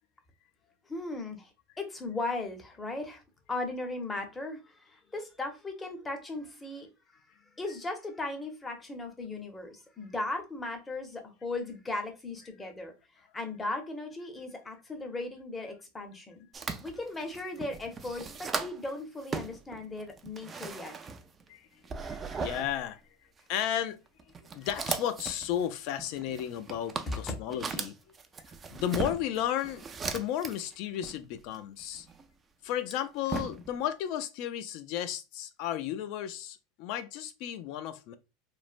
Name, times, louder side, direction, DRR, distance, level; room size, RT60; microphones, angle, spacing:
voice 1, 0.9-3.2 3.5-6.9 7.1-7.3 7.6-16.5 16.8-20.9 27.1-27.3, left 2 dB, 15° left, 0.7 m, -37 dB
sound 1, 16.5-18.9 19.2-21.5 21.8-22.7 23.4-23.6 24.2-30.7 31.0-32.2 32.7-33.8, right 5 dB, 20° right, 0.3 m, -38 dB
voice 2, 22.0-23.0 23.5-24.0 24.5-28.0 28.7-29.8 30.1-32.1 32.6-38.2, left 11 dB, 55° left, 0.3 m, -33 dB
3.1 x 2.0 x 2.4 m
supercardioid pair, 130°, 0 cm